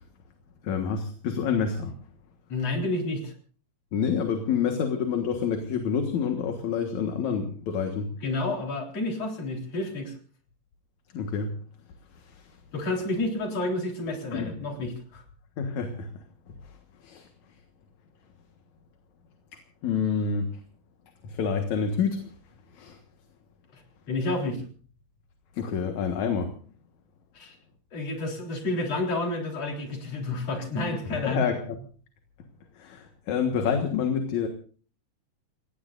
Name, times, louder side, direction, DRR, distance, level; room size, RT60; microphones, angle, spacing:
voice 1, 0.6-1.9 3.9-8.1 11.1-11.6 12.2-12.5 14.3-14.5 15.6-16.1 17.0-17.3 19.8-20.6 21.2-22.3 22.7-23.0 25.5-26.5 31.2-31.8 32.8-34.5, left 6 dB, 60° left, 5 dB, 2.7 m, -28 dB
voice 2, 2.5-3.3 8.2-10.1 12.7-15.2 23.7-23.8 24.1-24.6 27.3-27.5 27.9-31.4, left 2 dB, 45° left, 2 dB, 4.8 m, -30 dB
29.5 x 17.0 x 2.6 m, 0.42 s
omnidirectional pair, 3.9 m